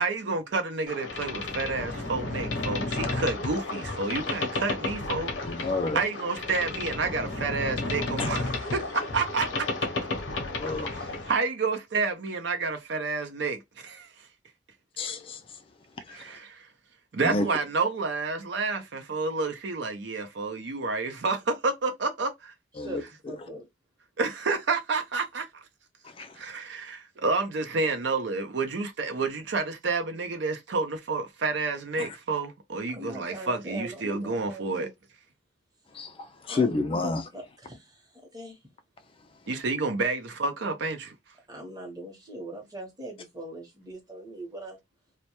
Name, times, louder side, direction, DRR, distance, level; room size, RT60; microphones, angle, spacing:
voice 1, 0.0-5.3 5.9-9.7 10.9-14.3 16.1-16.7 17.1-22.5 24.2-25.5 26.3-34.9 39.5-41.2, right 3 dB, 70° right, 0.5 m, -29 dB
Boat Water vehicle, 0.9-11.4, left 2 dB, 90° left, 0.7 m, -32 dB
voice 2, 5.4-6.0 10.6-10.9 15.0-15.4 16.1-16.2 17.2-17.5 22.8-23.4 26.2-26.3 32.0-32.1 35.9-37.2, left 3 dB, 30° left, 0.3 m, -29 dB
voice 3, 23.3-23.7 32.9-34.9 36.4-38.6 41.5-44.8, right 1 dB, 20° right, 0.8 m, -41 dB
2.1 x 2.1 x 2.8 m
head